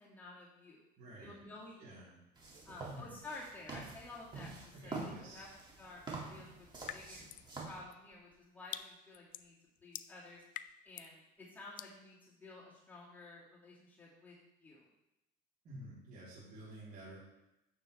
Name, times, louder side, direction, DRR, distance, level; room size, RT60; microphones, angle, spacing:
voice 1, 0.0-0.8 1.2-2.0 2.6-5.5 5.8-7.2 7.6-9.5 9.8-10.4 10.8-14.3 14.6-14.9, left 2 dB, 10° left, -7 dB, 2.2 m, -52 dB
voice 2, 1.0-1.4 1.8-2.2 2.9-3.1 4.7-5.4 15.6-17.2, right 1 dB, 50° right, -9 dB, 3.3 m, -51 dB
sound 1, 2.4-7.8, right 3 dB, 25° right, 2.2 m, -46 dB
sound 2, 6.9-7.5 7.9-11.2 11.8-12.0, left 12 dB, 50° left, 0.4 m, -47 dB
9.2 x 6.8 x 3.3 m, 0.90 s
cardioid pair, 110°, 19 cm